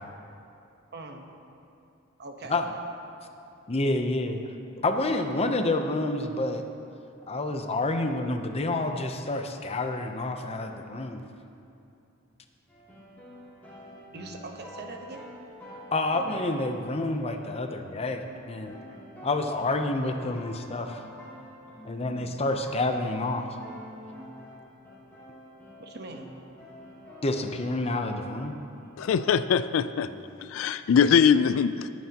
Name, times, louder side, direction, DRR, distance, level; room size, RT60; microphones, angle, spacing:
voice 1, 0.9-1.3 2.2-2.6 14.1-15.3 18.7-19.2 25.8-26.3, right 2 dB, 55° right, 3 dB, 1.1 m, -42 dB
voice 2, 3.7-4.4 4.8-6.6 7.3-11.2 15.9-18.8 19.2-21.1 21.8-23.6 27.2-28.6, left 2 dB, 30° left, 6 dB, 0.6 m, -28 dB
sound 1, 12.7-28.5 28.8-30.4, equal, 10° left, 2.7 m, -47 dB
voice 3, 29.0-30.1 30.4-31.9, left 7 dB, 70° left, 14 dB, 0.4 m, -22 dB
19.5 x 9.3 x 2.9 m, 2.7 s
head